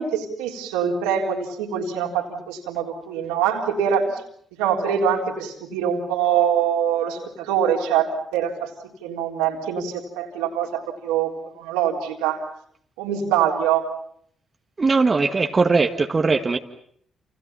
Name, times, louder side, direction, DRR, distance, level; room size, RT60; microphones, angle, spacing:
voice 1, 0.0-4.2 4.6-8.7 9.0-12.4 13.0-13.9, right 8 dB, 80° right, 0 dB, 3.8 m, -24 dB
voice 2, 14.8-16.6, right 4 dB, 35° right, 4 dB, 1.9 m, -19 dB
29.5 x 29.0 x 5.7 m, 0.65 s
hypercardioid pair, 45°, 0 cm